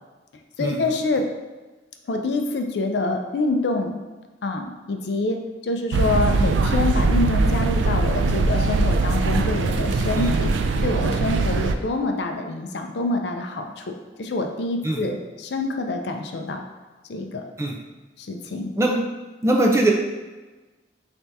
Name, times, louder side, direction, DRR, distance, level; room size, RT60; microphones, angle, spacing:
voice 1, 0.6-1.2 2.1-4.0 4.4-16.6 17.1-17.5 18.2-18.7, left 2 dB, 65° left, 4 dB, 0.4 m, -26 dB
sound 1, 5.9-11.8, right 3 dB, 85° right, 0.3 m, -21 dB
voice 2, 19.4-19.9, right 1 dB, 15° right, 0 dB, 0.4 m, -21 dB
3.3 x 2.7 x 4.6 m, 1.2 s
head